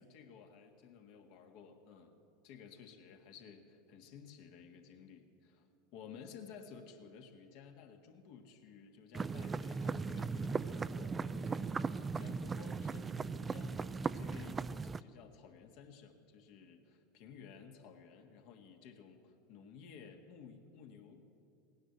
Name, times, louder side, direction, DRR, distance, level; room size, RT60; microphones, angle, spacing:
voice 1, 0.0-2.2 2.4-11.9 12.1-21.2, left 6 dB, 60° left, 5 dB, 1.7 m, -55 dB
sound 1, 9.1-15.0, right 4 dB, 20° right, 0.4 m, -38 dB
17.5 x 9.9 x 8.0 m, 2.6 s
hypercardioid pair, 90°, 0 cm